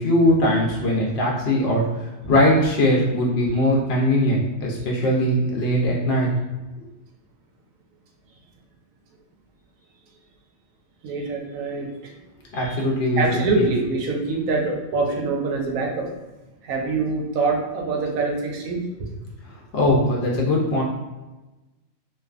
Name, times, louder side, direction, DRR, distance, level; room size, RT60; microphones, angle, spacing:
voice 1, 0.0-6.3 6.8-6.9 12.5-13.2 13.6-13.7 19.7-20.8, left 1 dB, 60° left, -3 dB, 0.7 m, -20 dB
voice 2, 11.0-11.9 12.5-12.8 13.2-16.1 16.6-18.8, right 3 dB, 80° right, 1 dB, 1.0 m, -24 dB
2.5 x 2.3 x 2.4 m, 1.1 s
omnidirectional pair, 1.4 m